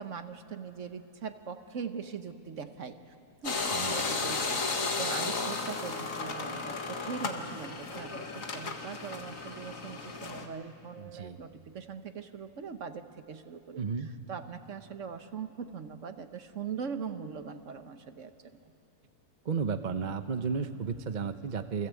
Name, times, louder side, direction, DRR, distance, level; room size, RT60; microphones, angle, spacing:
voice 1, 0.0-3.1 3.4-18.3, right 6 dB, 55° right, 9 dB, 1.3 m, -41 dB
sound 1, 3.4-10.5, left 4 dB, 60° left, 2.0 m, -34 dB
voice 2, 3.5-4.1 11.0-11.4 13.8-14.1 19.4-21.9, right 5 dB, 40° right, 9 dB, 0.8 m, -33 dB
28.5 x 21.0 x 8.4 m, 2.5 s
omnidirectional pair, 1.6 m